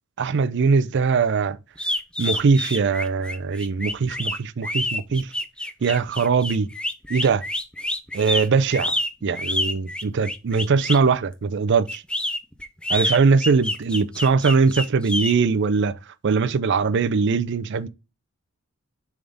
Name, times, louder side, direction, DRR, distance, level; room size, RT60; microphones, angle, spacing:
voice 1, 0.2-1.6 2.2-5.3 5.8-6.7 7.1-7.4 8.1-8.9 9.2-12.0 12.9-16.0 16.2-17.9, right 5 dB, 55° right, 0.4 m, -21 dB
sound 1, 1.8-11.1 11.9-15.3, left 1 dB, 5° left, 0.4 m, -27 dB
6.9 x 3.6 x 3.9 m
head